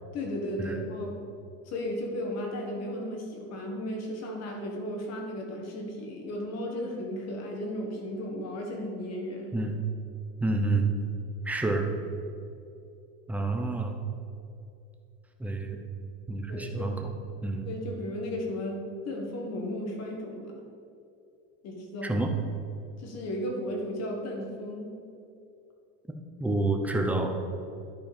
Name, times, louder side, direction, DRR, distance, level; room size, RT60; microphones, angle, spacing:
voice 1, 0.1-1.2 1.6-9.6 16.5-16.9 17.6-20.5 21.6-22.2 23.0-25.0, left 1 dB, 40° left, 1 dB, 1.6 m, -35 dB
voice 2, 10.4-10.9 11.4-11.9 13.3-14.0 15.4-15.8 16.3-17.0 17.4-17.7 22.0-22.3 26.4-27.3, right 2 dB, 5° right, 3 dB, 0.6 m, -28 dB
10.5 x 4.4 x 5.2 m, 2.6 s
supercardioid pair, 135°, 38 cm